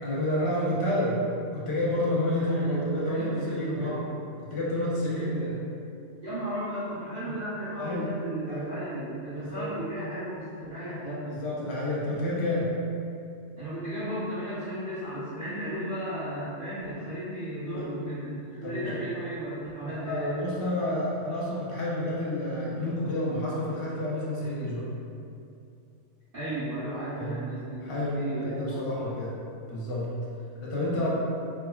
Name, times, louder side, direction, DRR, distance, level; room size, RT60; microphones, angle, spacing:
voice 1, 0.0-1.2 1.5-4.0 4.5-5.6 7.3-7.4 7.8-8.2 8.5-8.7 9.4-9.7 11.3-12.8 17.7-17.9 18.6-19.0 19.9-24.8 27.2-27.4 27.8-29.4 29.7-30.1 30.6-31.1, left 1 dB, 45° left, -6 dB, 0.4 m, -29 dB
voice 2, 2.4-2.9 3.1-4.0 5.1-5.5 6.2-11.3 13.6-20.4 26.3-29.1 30.9-31.1, right 1 dB, 50° right, -17 dB, 1.2 m, -35 dB
3.4 x 2.1 x 2.2 m, 2.5 s
omnidirectional pair, 1.2 m